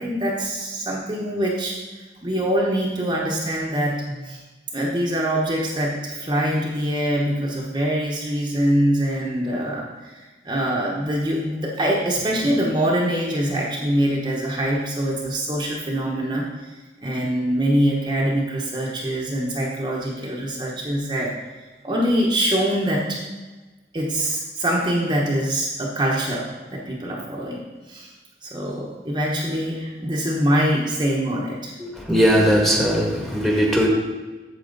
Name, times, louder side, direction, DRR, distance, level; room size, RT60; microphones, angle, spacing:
voice 1, 0.0-1.7 2.2-4.4 4.7-16.7 17.0-21.3 21.8-23.2 23.9-26.5 26.7-28.1 28.4-31.7, equal, 25° right, -3 dB, 1.0 m, -24 dB
voice 2, 31.8-33.9, equal, ahead, -2 dB, 1.4 m, -19 dB
8.6 x 6.9 x 4.0 m, 1.2 s
head